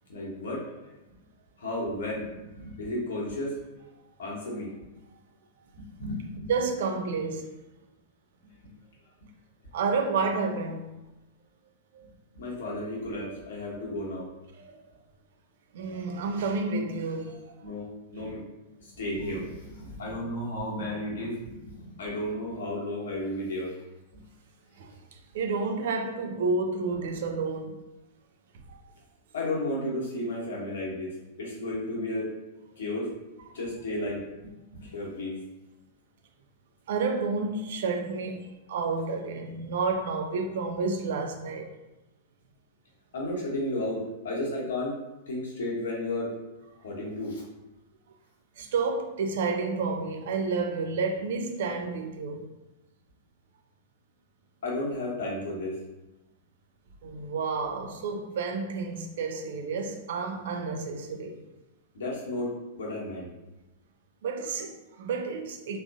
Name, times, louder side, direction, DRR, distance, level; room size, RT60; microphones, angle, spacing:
voice 1, 0.1-0.6 1.6-3.5 4.2-4.7 5.7-6.5 12.3-14.3 17.6-18.4 18.8-23.7 24.1-24.2 29.3-32.3 32.8-33.1 33.5-35.4 43.1-44.9 45.3-46.3 46.8-47.4 54.6-55.7 61.9-63.3, left 1 dB, 65° left, 1.0 m, -33 dB
voice 2, 6.5-7.5 9.7-10.9 11.9-12.0 14.5-14.8 15.7-17.6 24.8-27.8 36.9-41.7 48.6-52.5 57.0-61.4 64.2-65.8, right 4 dB, 60° right, 0.4 m, -30 dB
3.5 x 2.4 x 2.5 m
figure-of-eight pair, 95°, 0 cm